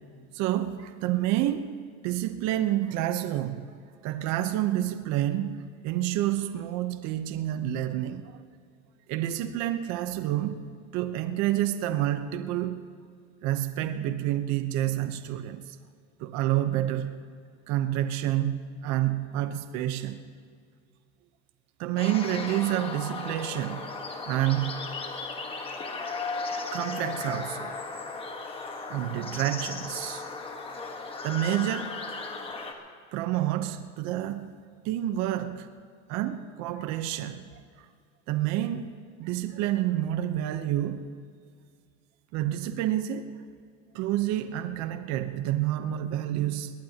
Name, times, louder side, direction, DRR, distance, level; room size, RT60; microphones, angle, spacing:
voice 1, 0.3-3.7 4.0-8.4 9.1-10.6 10.9-12.8 13.4-15.8 16.2-17.2 17.7-20.2 21.8-23.9 24.3-24.9 26.7-27.7 28.9-30.2 31.2-32.0 33.1-34.5 34.8-35.7 36.1-37.5 37.8-37.9 38.3-38.9 39.2-41.1 42.3-43.3 43.9-46.7, right 13 dB, 50° right, 9 dB, 0.9 m, -29 dB
sound 1, 22.0-32.7, left 4 dB, 15° left, 1.4 m, -36 dB
21.5 x 18.0 x 2.9 m, 2.1 s
supercardioid pair, 150°, 34 cm